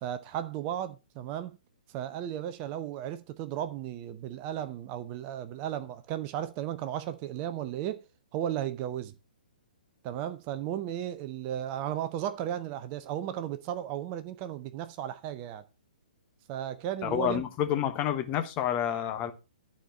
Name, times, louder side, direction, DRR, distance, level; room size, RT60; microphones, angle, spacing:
voice 1, 0.0-1.6 1.9-8.0 8.3-9.1 10.0-15.7 16.5-17.4, right 11 dB, 30° right, 0.6 m, -35 dB
voice 2, 17.0-19.3, left 10 dB, 25° left, 1.0 m, -29 dB
11.5 x 4.4 x 5.7 m
figure-of-eight pair, 125°, 5 cm